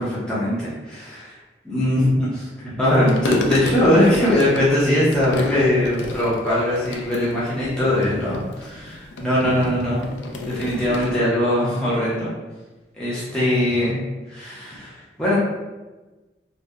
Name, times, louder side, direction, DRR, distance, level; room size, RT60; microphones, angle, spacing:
voice 1, 0.0-1.3 1.6-10.0 10.5-12.3 13.0-14.0 14.3-15.4, left 1 dB, 5° left, -10 dB, 0.5 m, -21 dB
sound 1, 2.8-11.2, left 2 dB, 85° left, 0.3 m, -32 dB
2.7 x 2.1 x 2.3 m, 1.2 s
head